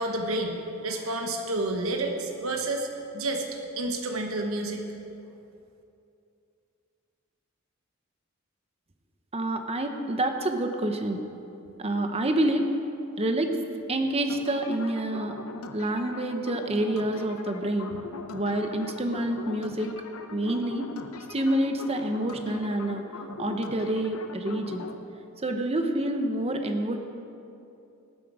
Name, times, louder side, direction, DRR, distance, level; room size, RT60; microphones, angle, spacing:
voice 1, 0.0-2.9 3.1-3.4 3.8-4.8, right 2 dB, 85° right, 3 dB, 1.2 m, -29 dB
voice 2, 9.3-11.2 11.8-12.7 13.2-13.5 13.9-15.3 15.7-18.0 18.3-19.9 20.3-20.9 21.3-23.0 23.4-24.8 25.4-27.0, right 1 dB, 30° right, 5 dB, 0.9 m, -27 dB
sound 1, 14.3-24.9, left 3 dB, 90° left, 0.8 m, -41 dB
18.5 x 7.8 x 4.9 m, 2.6 s
head